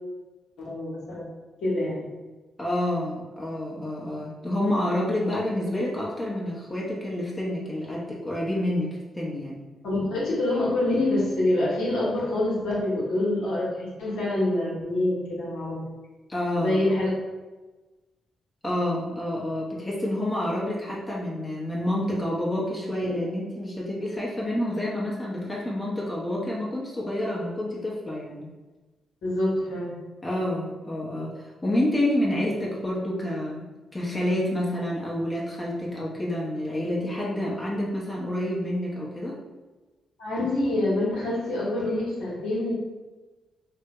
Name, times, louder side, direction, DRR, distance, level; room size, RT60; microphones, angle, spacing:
voice 1, 0.6-1.2 1.6-2.1 9.8-15.8 16.5-17.1 23.0-23.1 29.2-30.0 40.2-42.7, left 1 dB, 70° left, -6 dB, 1.0 m, -26 dB
voice 2, 2.6-9.6 16.3-16.8 18.6-28.5 30.2-33.6 33.9-39.4, left 1 dB, 25° left, -4 dB, 0.8 m, -28 dB
3.2 x 2.2 x 2.9 m, 1.2 s
hypercardioid pair, 40°, 0 cm